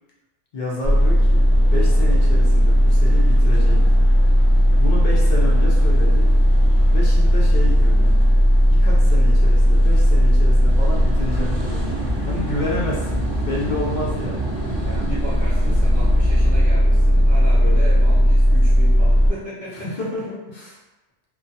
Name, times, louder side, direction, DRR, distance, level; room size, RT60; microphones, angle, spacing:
voice 1, 0.5-4.1 4.8-6.3 6.9-8.2 8.7-11.8 12.2-14.5 19.7-20.8, left 2 dB, 60° left, -5 dB, 0.5 m, -30 dB
sound 1, 0.8-19.3, equal, 30° right, 0.5 m, -16 dB
voice 2, 14.8-19.9, equal, 10° right, -10 dB, 0.8 m, -35 dB
2.3 x 2.2 x 2.6 m, 1.1 s
omnidirectional pair, 1.2 m